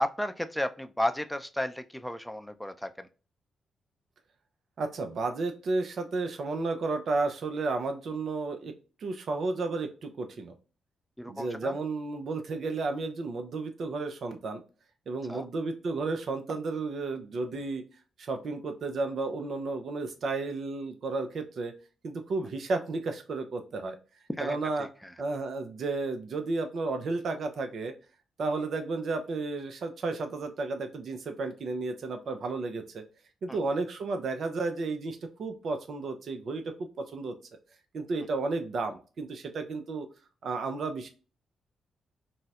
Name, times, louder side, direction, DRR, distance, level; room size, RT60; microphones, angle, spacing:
voice 1, 0.0-3.1 11.2-11.8 15.3-15.5 24.3-25.1 33.5-33.6, left 1 dB, 5° left, 9 dB, 0.4 m, -33 dB
voice 2, 4.8-8.7 9.0-10.5 11.3-14.6 15.1-17.8 18.2-21.7 22.0-24.0 24.4-24.9 25.2-27.9 28.4-33.0 33.4-37.3 37.9-40.1 40.4-41.1, right 3 dB, 65° right, 7 dB, 0.4 m, -32 dB
3.9 x 2.0 x 2.3 m, 0.35 s
hypercardioid pair, 40°, 0 cm